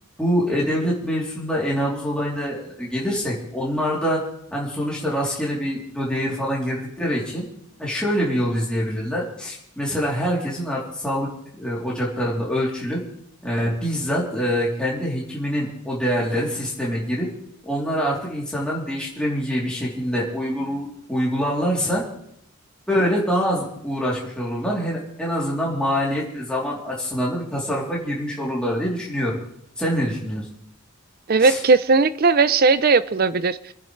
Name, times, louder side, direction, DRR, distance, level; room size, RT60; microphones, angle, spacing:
voice 1, 0.2-4.2 4.5-7.5 7.8-13.0 13.4-17.3 17.6-22.0 22.9-29.4 29.8-30.5 31.4-31.6, equal, 5° left, 3.2 m, -25 dB
voice 2, 31.3-33.7, right 4 dB, 45° right, 0.5 m, -18 dB
28.0 x 10.5 x 3.3 m
head